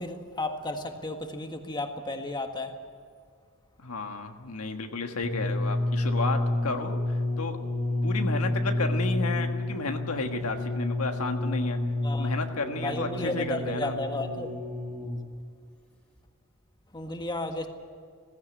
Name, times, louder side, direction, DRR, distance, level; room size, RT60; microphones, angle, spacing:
voice 1, 0.0-2.7 12.0-12.3 12.8-14.5 16.9-17.7, left 2 dB, 20° left, 5 dB, 1.7 m, -33 dB
voice 2, 3.8-7.0 7.4-7.6 8.0-11.8 12.2-14.0, left 3 dB, 85° left, 5 dB, 1.5 m, -32 dB
sound 1, 5.2-15.3 16.2-16.3, left 2 dB, 5° left, 3.3 m, -30 dB
17.0 x 16.0 x 9.8 m, 2.1 s
head